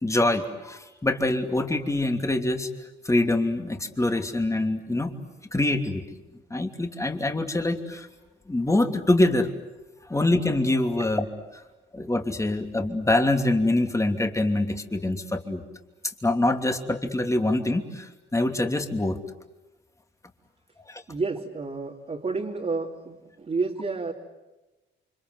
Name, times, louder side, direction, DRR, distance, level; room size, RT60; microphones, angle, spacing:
voice 1, 0.0-2.7 3.0-5.1 5.5-6.0 6.5-8.1 8.5-9.5 10.0-11.3 11.5-11.6 11.9-15.6 16.2-19.2 20.9-21.0, left 2 dB, 15° left, 5 dB, 2.9 m, -25 dB
voice 2, 21.1-24.1, right 4 dB, 35° right, -2 dB, 3.1 m, -30 dB
29.5 x 25.0 x 8.0 m, 1.1 s
cardioid pair, 90°, 20 cm